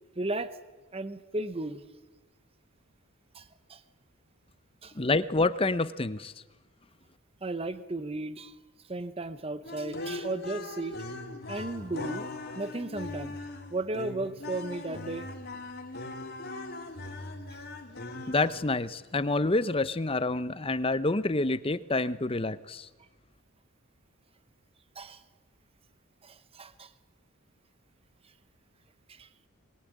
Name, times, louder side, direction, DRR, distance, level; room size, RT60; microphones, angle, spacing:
voice 1, 0.2-0.5 0.9-1.8 3.3-3.8 4.8-4.9 7.4-8.5 8.9-10.9 11.5-12.3 12.5-13.4 13.7-15.3 17.5-17.6 25.0-25.2 26.2-26.9 29.1-29.5, right 2 dB, 25° right, 12 dB, 0.9 m, -35 dB
voice 2, 5.0-6.3 18.3-22.9, left 2 dB, 25° left, 14 dB, 0.7 m, -27 dB
sound 1, 9.6-18.9, left 2 dB, 45° left, 3.2 m, -40 dB
21.5 x 21.5 x 9.5 m, 1.2 s
head